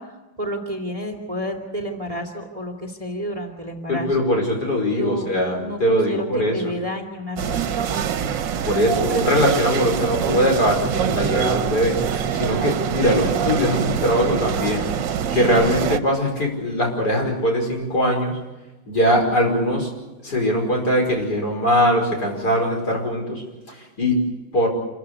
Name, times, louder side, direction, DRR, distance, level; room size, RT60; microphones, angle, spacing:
voice 1, 0.0-4.1 5.0-8.0 9.1-9.3, equal, 20° right, 4 dB, 2.6 m, -30 dB
voice 2, 3.9-6.8 8.6-14.9 15.3-18.4 18.9-19.9 20.2-23.4 23.7-24.2 24.5-24.7, equal, 55° left, 1 dB, 6.0 m, -21 dB
sound 1, 7.4-16.0, right 8 dB, 75° right, 1.6 m, -24 dB
27.5 x 15.0 x 9.8 m, 1.1 s
omnidirectional pair, 2.0 m